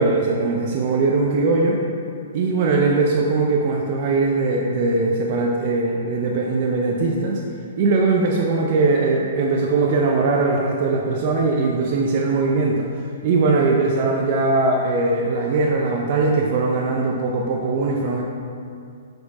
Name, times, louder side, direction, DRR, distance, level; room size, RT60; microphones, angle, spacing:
voice 1, 0.0-1.8 2.3-7.4 7.8-12.9 13.2-18.2, right 3 dB, 45° right, -1 dB, 0.6 m, -20 dB
5.3 x 4.6 x 4.1 m, 2.4 s
hypercardioid pair, 140°, 0 cm